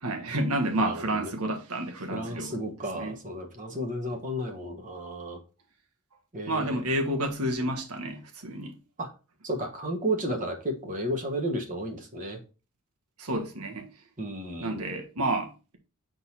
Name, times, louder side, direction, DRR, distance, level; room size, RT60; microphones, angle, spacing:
voice 1, 0.0-2.6 2.9-3.2 6.5-8.7 13.2-13.9 14.6-15.8, right 1 dB, 85° right, 1.5 m, -30 dB
voice 2, 0.8-1.3 2.1-5.4 6.3-6.8 9.0-9.1 9.4-12.4 14.2-14.9, right 1 dB, 35° right, 1.2 m, -33 dB
6.3 x 3.9 x 4.2 m
head